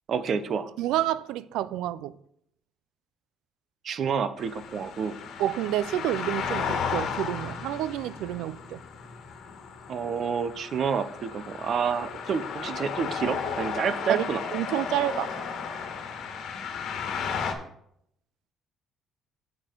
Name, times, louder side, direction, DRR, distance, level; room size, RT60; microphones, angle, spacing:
voice 1, 0.1-0.7 3.8-5.1 9.9-14.4, right 6 dB, 45° right, 0.7 m, -29 dB
voice 2, 0.8-2.1 5.4-8.8 14.1-14.3 14.5-15.3, right 13 dB, 85° right, 0.4 m, -29 dB
sound 1, 4.4-17.5, left 6 dB, 65° left, 1.4 m, -34 dB
7.5 x 6.9 x 4.5 m
cardioid pair, 145°, 0 cm